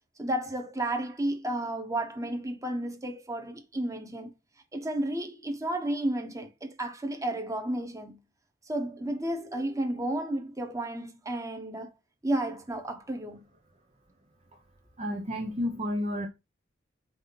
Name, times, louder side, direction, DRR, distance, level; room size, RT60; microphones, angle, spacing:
voice 1, 0.2-4.3 4.7-8.2 8.6-11.9 12.2-13.4, right 1 dB, 15° right, 1.2 m, -32 dB
voice 2, 15.0-16.3, left 1 dB, 35° right, 0.7 m, -31 dB
7.7 x 2.8 x 5.4 m
head